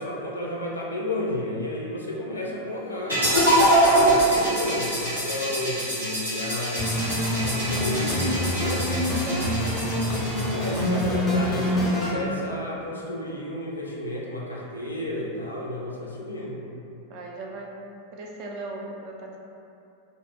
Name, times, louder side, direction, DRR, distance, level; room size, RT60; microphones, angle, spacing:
voice 1, 0.0-3.2 3.8-6.9 7.4-8.9 10.5-16.6, left 1 dB, 80° left, -3 dB, 0.4 m, -32 dB
sound 1, 3.1-11.1, right 1 dB, 85° right, 1.1 m, -24 dB
sound 2, 6.8-12.1, left 1 dB, 20° left, 0.6 m, -26 dB
voice 2, 9.1-9.7 17.1-17.7 18.1-19.4, right 2 dB, 40° right, -1 dB, 0.3 m, -38 dB
2.1 x 2.0 x 3.2 m, 2.7 s
figure-of-eight pair, 90°, 0 cm